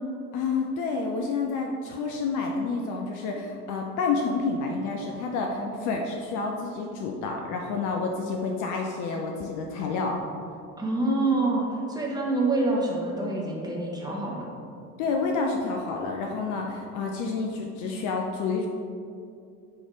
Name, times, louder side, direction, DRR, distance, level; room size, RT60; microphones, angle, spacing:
voice 1, 0.3-10.2 15.0-18.7, left 4 dB, 40° left, 2 dB, 0.6 m, -29 dB
voice 2, 5.6-5.9 10.8-14.5, right 2 dB, 10° right, -3 dB, 1.2 m, -27 dB
9.9 x 3.4 x 3.9 m, 2.5 s
figure-of-eight pair, 65°, 47 cm